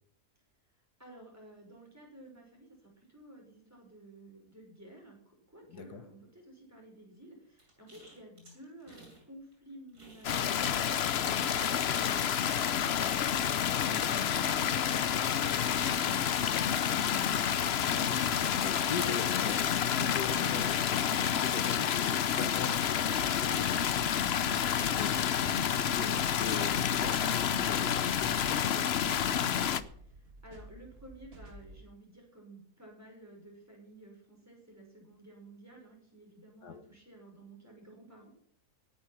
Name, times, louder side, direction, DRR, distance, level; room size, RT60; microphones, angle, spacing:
voice 1, 1.0-17.1 23.4-23.9 24.2-25.7 29.7-29.8 30.0-30.1 30.4-38.3, right 1 dB, 10° right, -1 dB, 5.8 m, -53 dB
voice 2, 5.7-6.0 13.9-14.2 17.9-23.8 25.0-25.1 25.4-29.4 36.6-36.8, left 6 dB, 80° left, 10 dB, 1.8 m, -41 dB
sound 1, 7.6-9.2 9.5-10.7 11.0-21.0 21.3-23.7, right 1 dB, 70° right, 7.8 m, -57 dB
sound 2, 10.2-29.8, left 9 dB, 55° left, 0.8 m, -29 dB
sound 3, 23.1-31.9, right 2 dB, 40° right, 1.8 m, -52 dB
18.0 x 9.7 x 6.0 m, 0.63 s
omnidirectional pair, 1.7 m